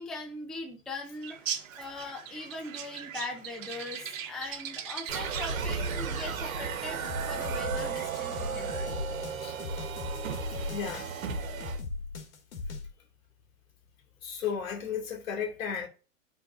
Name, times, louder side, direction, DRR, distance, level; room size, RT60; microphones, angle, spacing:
voice 1, 0.0-9.0, left 2 dB, ahead, 0.5 m, -41 dB
sound 1, 1.2-5.7, right 9 dB, 70° right, 1.2 m, -39 dB
sound 2, 5.1-11.8, right 6 dB, 85° right, 1.2 m, -35 dB
sound 3, 7.0-12.9, left 3 dB, 55° left, 2.3 m, -38 dB
voice 2, 10.7-11.1 14.2-15.9, left 7 dB, 80° left, 2.4 m, -34 dB
11.5 x 4.0 x 2.6 m
hypercardioid pair, 130°, 40 cm